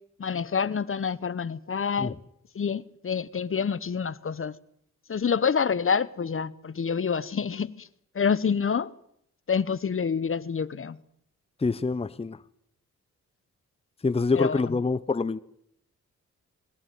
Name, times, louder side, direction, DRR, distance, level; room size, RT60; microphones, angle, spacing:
voice 1, 0.2-2.1 2.5-4.5 5.1-7.9 8.1-8.9 9.5-11.0 14.3-14.8, left 6 dB, 45° left, 1.0 m, -27 dB
voice 2, 11.6-12.4 14.0-15.4, left 4 dB, 20° left, 0.8 m, -26 dB
21.0 x 16.5 x 9.4 m
cardioid pair, 70°, 31 cm